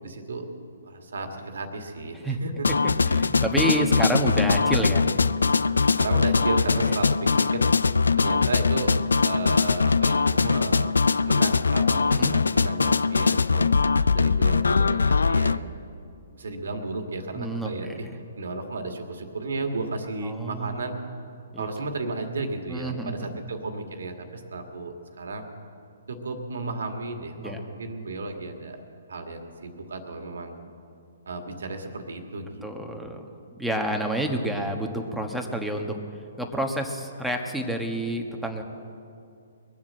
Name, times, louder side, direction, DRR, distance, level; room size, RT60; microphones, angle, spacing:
voice 1, 0.0-0.5 0.8-2.7 5.9-7.6 8.2-8.9 9.2-10.9 11.2-13.7 14.1-15.7 16.3-18.1 18.4-21.0 21.6-25.5 26.1-28.8 29.1-30.5 31.3-32.6, right 3 dB, 75° right, 4 dB, 1.9 m, -33 dB
sound 1, 2.6-15.6, left 4 dB, 85° left, 0.3 m, -22 dB
voice 2, 3.1-5.0 12.1-12.3 17.3-18.0 20.2-20.8 21.5-21.7 22.7-23.3 27.4-27.6 32.6-33.2 33.5-36.0 36.4-38.6, right 1 dB, ahead, 1 dB, 1.3 m, -29 dB
21.5 x 7.3 x 7.6 m, 2.5 s
hypercardioid pair, 135°, 0 cm